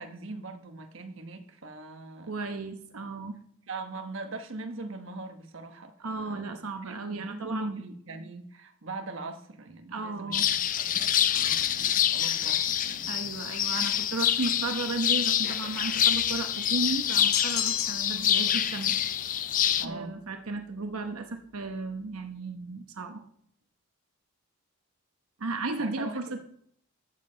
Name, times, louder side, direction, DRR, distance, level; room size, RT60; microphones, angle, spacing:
voice 1, 0.0-2.3 3.7-11.1 11.4-13.1 19.8-20.2 25.8-26.4, right 2 dB, 60° right, 5 dB, 1.2 m, -41 dB
voice 2, 2.3-3.4 6.0-7.8 9.9-10.5 13.1-19.0 19.8-23.2 25.4-26.4, right 3 dB, 85° right, 5 dB, 1.0 m, -34 dB
sound 1, 10.3-19.9, left 10 dB, 40° left, 0.4 m, -26 dB
sound 2, 17.3-18.3, left 9 dB, 75° left, 1.0 m, -30 dB
13.5 x 7.6 x 3.9 m, 0.66 s
head